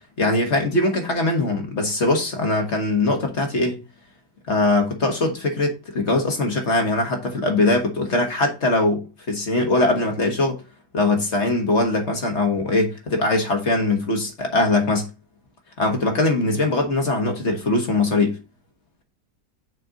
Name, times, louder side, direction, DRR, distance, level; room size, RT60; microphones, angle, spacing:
voice 1, 0.2-3.8 4.5-10.6 10.9-15.1 15.8-18.3, left 2 dB, 40° left, 1.5 m, -21 dB
6.5 x 4.2 x 5.1 m
omnidirectional pair, 2.0 m